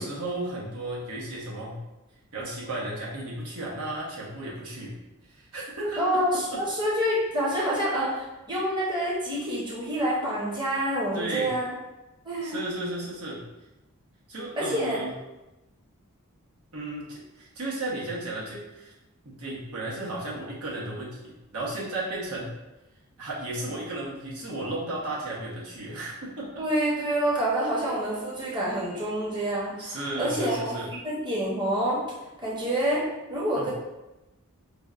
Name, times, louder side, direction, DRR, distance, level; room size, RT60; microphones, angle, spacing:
voice 1, 0.0-1.8 2.3-5.0 5.3-6.0 6.5-6.6 11.1-11.5 12.4-13.4 14.3-15.1 16.7-18.9 19.2-22.5 23.2-26.5 29.8-30.9 33.5-33.7, right 2 dB, 80° right, -5 dB, 1.0 m, -34 dB
voice 2, 6.0-11.7 12.2-12.6 14.6-15.0 26.6-32.0 32.4-33.7, right 1 dB, 20° right, -6 dB, 0.8 m, -27 dB
5.1 x 2.1 x 2.4 m, 1.0 s
head